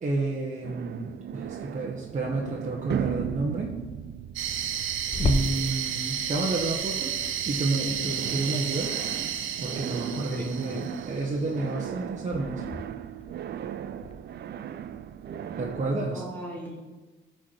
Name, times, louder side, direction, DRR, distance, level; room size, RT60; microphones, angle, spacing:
voice 1, 0.0-3.7 5.2-7.1 7.4-9.0 9.6-12.6 15.6-16.2, right 3 dB, 35° right, -2 dB, 1.3 m, -30 dB
sound 1, 0.6-7.6 7.9-16.2, right 9 dB, 55° right, 0.5 m, -37 dB
sound 2, 4.4-11.3, right 9 dB, 80° right, 0.8 m, -32 dB
Water tap faucet / Sink (filling or washing), 5.1-14.1, left 3 dB, 30° left, 0.9 m, -36 dB
voice 2, 10.3-10.9 15.9-16.8, equal, 10° left, -4 dB, 3.1 m, -38 dB
13.5 x 4.7 x 4.6 m, 1.2 s
cardioid pair, 90°, 20 cm